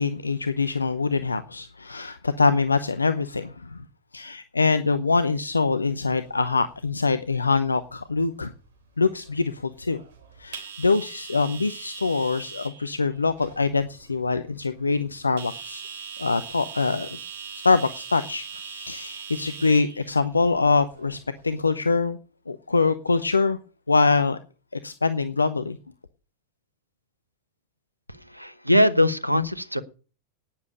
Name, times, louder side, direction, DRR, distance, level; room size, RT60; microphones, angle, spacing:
voice 1, 0.0-3.8 4.1-8.5 9.0-10.0 10.4-15.8 16.2-21.2 21.4-22.2 22.5-23.6 23.9-24.4 24.7-25.8, left 4 dB, 80° left, 11 dB, 0.7 m, -24 dB
sound 1, 5.5-21.6, right 7 dB, 55° right, 3.2 m, -42 dB
voice 2, 28.3-29.8, left 1 dB, 90° right, 16 dB, 1.0 m, -21 dB
11.5 x 9.7 x 6.7 m, 0.36 s
figure-of-eight pair, 90°, 0 cm